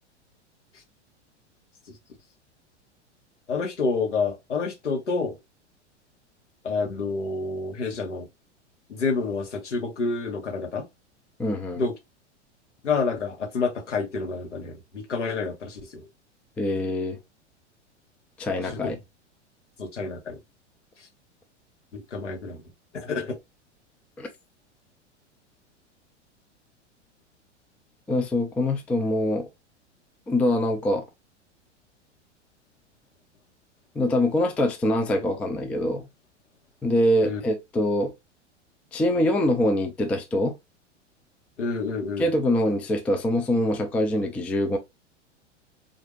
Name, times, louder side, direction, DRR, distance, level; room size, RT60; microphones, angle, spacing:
voice 1, 3.5-5.4 6.6-8.3 8.9-10.9 11.8-12.0 12.8-16.1 18.6-18.9 19.8-20.4 21.0-21.1 21.9-22.6 22.9-23.4 37.2-37.4 41.6-42.3, left 4 dB, 80° left, 1.1 m, -28 dB
voice 2, 11.4-11.8 16.6-17.2 18.4-19.0 24.2-24.3 28.1-29.5 30.3-31.0 34.0-36.1 36.8-38.1 38.9-40.6 42.2-44.8, left 1 dB, 5° left, 0.3 m, -24 dB
3.9 x 2.6 x 2.9 m
figure-of-eight pair, 90°, 36 cm